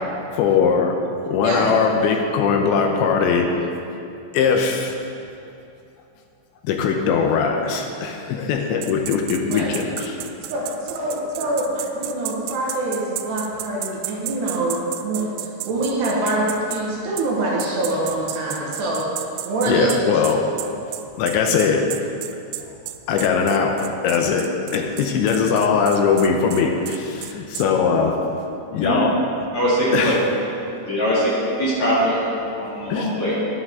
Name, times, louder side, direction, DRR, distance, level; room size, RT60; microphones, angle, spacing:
voice 1, 0.3-1.0 1.3-3.5 4.3-5.0 6.6-10.2 19.7-20.5 21.2-21.9 22.6-22.8 23.1-28.2 28.7-29.1 29.9-30.2 32.9-33.1, left 6 dB, 80° left, 3 dB, 2.8 m, -20 dB
sound 1, 8.8-16.8 17.2-17.3 17.6-27.7, right 14 dB, 90° right, 3.1 m, -32 dB
voice 2, 10.5-19.0 19.5-19.9, right 1 dB, 70° right, -4 dB, 3.1 m, -24 dB
voice 3, 29.5-30.1 30.8-31.3 31.6-32.3 32.5-33.4, equal, 45° left, -9 dB, 3.1 m, -21 dB
11.0 x 10.5 x 3.6 m, 2.6 s
omnidirectional pair, 5.5 m